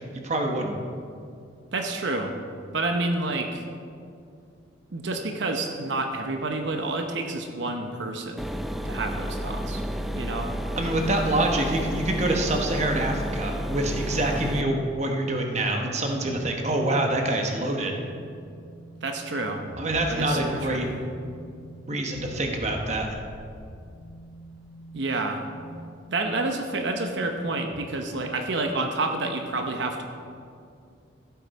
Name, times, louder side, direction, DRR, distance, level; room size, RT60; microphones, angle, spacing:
voice 1, 0.1-0.8 10.8-18.0 19.8-20.9 21.9-23.2, right 1 dB, 35° right, 2 dB, 1.0 m, -26 dB
voice 2, 1.7-2.3 2.7-3.6 4.9-8.5 8.8-9.8 10.1-10.5 19.0-19.6 20.1-20.9 24.9-25.4 26.1-30.0, right 2 dB, 70° right, 4 dB, 0.8 m, -29 dB
sound 1, 8.4-14.6, equal, ahead, 0.4 m, -31 dB
sound 2, 16.0-28.8, right 1 dB, 70° left, 1.3 m, -44 dB
14.5 x 8.4 x 4.1 m, 2.4 s
head